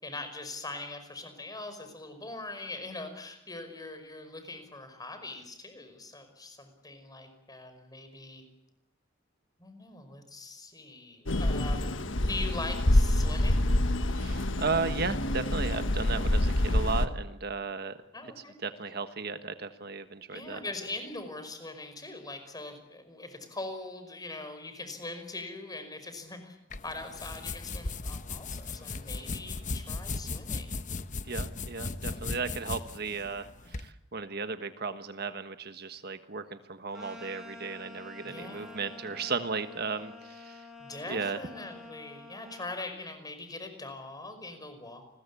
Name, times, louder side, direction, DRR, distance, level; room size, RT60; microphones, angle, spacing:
voice 1, 0.0-8.4 9.6-13.7 18.1-18.5 20.3-26.6 26.8-30.8 38.2-39.3 40.8-45.1, left 2 dB, 20° left, 8 dB, 5.3 m, -42 dB
sound 1, 11.3-17.1, left 1 dB, 75° left, 1.5 m, -26 dB
voice 2, 14.1-18.0 18.4-20.6 31.2-40.7 41.1-41.4, right 4 dB, 55° right, 9 dB, 1.4 m, -35 dB
sound 2, 26.7-33.9, left 3 dB, 40° left, 1.0 m, -37 dB
sound 3, 36.9-42.8, left 2 dB, 5° right, 7.4 m, -48 dB
29.5 x 21.5 x 8.4 m, 0.85 s
head